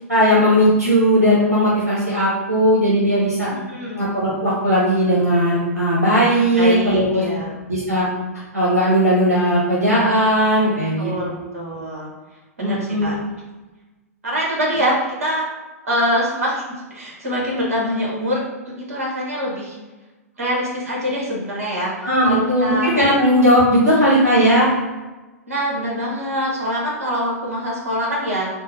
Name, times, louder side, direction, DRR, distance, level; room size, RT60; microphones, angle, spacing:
voice 1, 0.1-3.5 4.0-7.2 7.7-8.1 8.5-11.1 12.6-13.1 22.0-24.7, equal, 85° right, -7 dB, 1.0 m, -17 dB
voice 2, 3.5-4.0 6.5-7.5 11.0-12.1 12.6-13.1 14.2-15.5 15.8-16.6 16.9-18.4 18.9-19.8 20.4-22.9 25.5-28.5, equal, 65° right, -4 dB, 1.4 m, -24 dB
3.6 x 2.1 x 4.2 m, 1.2 s
figure-of-eight pair, 105°, 8 cm